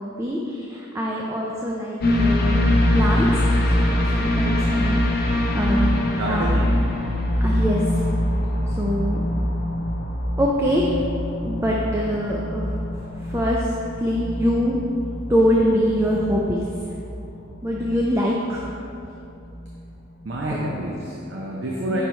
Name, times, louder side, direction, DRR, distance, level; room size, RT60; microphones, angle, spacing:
voice 1, 0.0-2.7 2.9-6.0 6.3-6.5 7.4-8.1 8.7-9.3 10.4-11.1 11.4-12.7 13.2-13.7 14.0-14.8 15.3-16.6 17.6-18.7 21.9-22.0, equal, 10° right, -3 dB, 0.4 m, -24 dB
sound 1, 2.0-19.8 20.2-20.3, left 1 dB, 45° left, 0.7 m, -24 dB
voice 2, 6.2-6.7 20.2-22.0, right 1 dB, 55° right, -3 dB, 0.6 m, -28 dB
5.4 x 4.6 x 4.3 m, 2.7 s
head